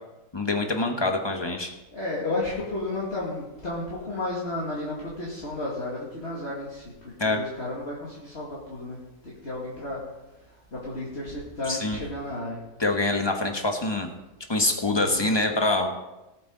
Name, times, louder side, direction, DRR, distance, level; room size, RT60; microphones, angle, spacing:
voice 1, 0.3-1.7 7.2-7.4 11.7-12.0 12.8-14.1 14.5-15.9, left 2 dB, 15° left, 3 dB, 1.2 m, -25 dB
voice 2, 1.9-9.0 9.2-10.0 10.7-12.6 14.9-15.3, left 2 dB, 40° left, -7 dB, 2.5 m, -33 dB
18.5 x 8.3 x 3.9 m, 1.0 s
omnidirectional pair, 1.7 m